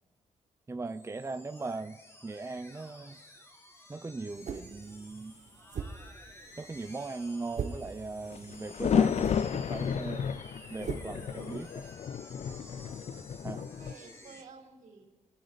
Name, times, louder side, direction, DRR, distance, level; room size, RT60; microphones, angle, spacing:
voice 1, 0.7-2.0 2.2-3.2 3.9-5.3 6.6-10.3 10.7-11.8 13.4-13.6, right 3 dB, 20° right, 10 dB, 0.6 m, -39 dB
sound 1, 0.9-14.4, left 1 dB, 20° left, 2.2 m, -53 dB
sound 2, 4.3-12.0, right 6 dB, 65° right, 1.3 m, -44 dB
sound 3, 8.3-13.9, left 7 dB, 55° left, 0.5 m, -32 dB
voice 2, 13.6-15.1, right 4 dB, 80° right, 0 dB, 4.3 m, -52 dB
27.5 x 11.0 x 4.1 m, 1.2 s
cardioid pair, 90°, 13 cm